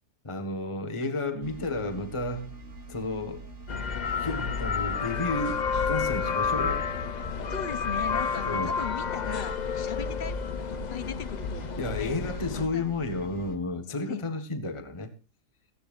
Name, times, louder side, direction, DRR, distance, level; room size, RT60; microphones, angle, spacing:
voice 1, 0.2-2.6 2.9-3.4 4.2-6.9 8.5-8.8 11.8-15.1, left 2 dB, 20° left, 1.4 m, -32 dB
sound 1, 1.4-13.6, right 2 dB, 45° right, 2.2 m, -45 dB
sound 2, 3.7-12.7, left 6 dB, 70° left, 0.4 m, -30 dB
voice 2, 7.5-12.2 12.5-12.8 14.1-14.2, left 7 dB, 45° left, 0.7 m, -38 dB
17.5 x 15.0 x 2.5 m
omnidirectional pair, 1.7 m